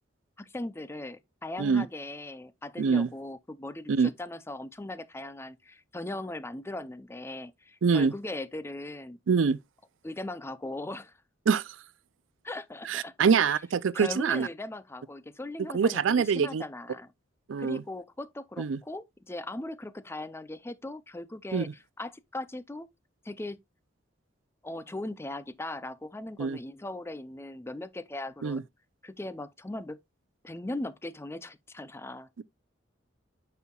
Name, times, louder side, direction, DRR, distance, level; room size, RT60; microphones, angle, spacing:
voice 1, 0.4-9.2 10.0-11.1 12.4-13.6 13.9-17.1 17.6-21.7 22.0-22.9 23.2-23.6 24.6-28.6 29.0-30.0 30.4-32.3, left 2 dB, 15° left, 0.5 m, -39 dB
voice 2, 2.8-3.1 3.9-4.1 7.8-8.1 9.3-9.6 11.5-11.6 12.9-14.5 15.7-16.6 17.5-17.8 18.6-18.8 21.5-21.6 26.4-26.6 28.4-28.6 32.4-32.5, right 6 dB, 80° right, 0.4 m, -24 dB
9.4 x 5.6 x 2.3 m
head